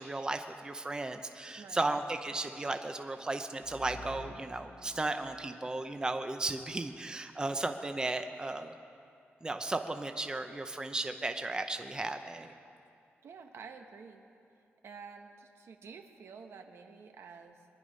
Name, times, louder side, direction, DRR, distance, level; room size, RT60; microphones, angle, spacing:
voice 1, 0.0-8.7 9.4-12.5, right 2 dB, 15° right, 7 dB, 0.7 m, -35 dB
voice 2, 1.6-1.9 13.2-14.3 14.8-17.7, right 5 dB, 75° right, 5 dB, 1.2 m, -50 dB
sound 1, 3.6-6.4, left 1 dB, 75° left, 1.2 m, -50 dB
23.0 x 10.5 x 5.4 m, 2.5 s
wide cardioid pair, 135°, 4 cm